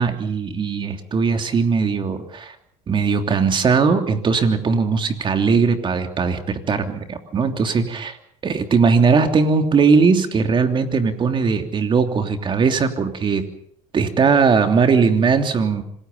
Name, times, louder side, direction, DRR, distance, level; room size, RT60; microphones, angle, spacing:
voice 1, 0.0-2.5 2.9-8.2 8.4-13.4 13.9-15.8, right 5 dB, 40° right, 6 dB, 3.1 m, -19 dB
26.5 x 20.0 x 5.5 m, 0.66 s
supercardioid pair, 90°, 13 cm